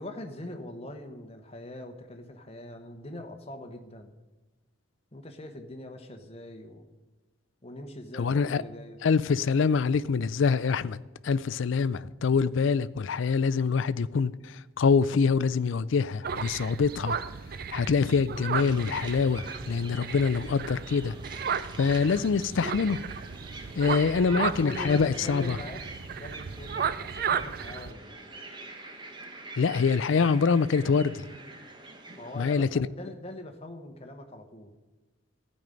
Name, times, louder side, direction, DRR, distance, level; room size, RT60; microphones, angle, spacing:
voice 1, 0.0-4.1 5.1-6.9 7.6-9.0 16.7-16.8 24.4-25.8 26.2-28.1 32.2-34.7, left 1 dB, 30° left, 1.0 m, -42 dB
voice 2, 8.1-8.6 9.0-11.0 11.2-17.2 17.7-21.1 21.8-23.0 23.8-25.6 29.6-31.2 32.4-32.9, left 5 dB, 65° left, 0.4 m, -25 dB
sound 1, 16.2-27.9, right 6 dB, 45° right, 0.4 m, -34 dB
sound 2, 18.6-32.7, right 2 dB, 20° right, 1.1 m, -46 dB
14.0 x 5.4 x 9.0 m
head